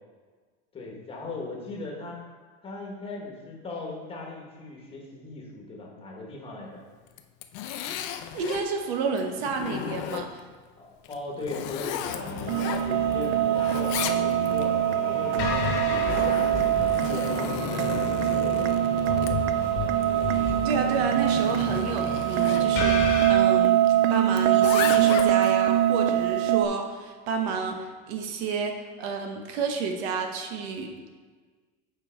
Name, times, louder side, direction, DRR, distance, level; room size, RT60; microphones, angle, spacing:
voice 1, 0.7-2.2 2.6-6.8 10.8-12.3 12.6-14.8 15.1-17.5 17.9-19.7, left 2 dB, 20° left, -1 dB, 1.2 m, -38 dB
Zipper (clothing), 7.1-8.7 9.2-10.5 11.0-13.3 13.5-14.7 15.5-22.7 24.3-25.5, left 10 dB, 60° left, 0.6 m, -35 dB
voice 2, 8.3-10.4 20.3-30.9, right 5 dB, 90° right, 4 dB, 1.1 m, -30 dB
sound 1, 12.0-23.4, left 3 dB, 35° left, 1.2 m, -33 dB
singing-bowl-beat, 12.5-26.7, right 12 dB, 60° right, 0.5 m, -23 dB
7.4 x 4.6 x 4.4 m, 1.5 s
cardioid pair, 160°, 31 cm